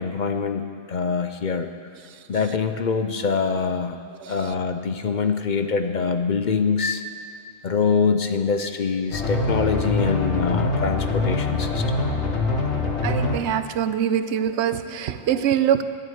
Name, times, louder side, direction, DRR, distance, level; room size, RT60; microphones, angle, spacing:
voice 1, 0.0-1.7 2.3-4.0 4.3-7.0 7.6-12.1, left 5 dB, 50° left, 7 dB, 0.7 m, -24 dB
sound 1, 9.1-13.4, left 3 dB, 80° left, 1.6 m, -24 dB
voice 2, 13.0-15.8, right 9 dB, 90° right, 11 dB, 0.9 m, -23 dB
12.5 x 7.5 x 9.2 m, 2.2 s
omnidirectional pair, 1.1 m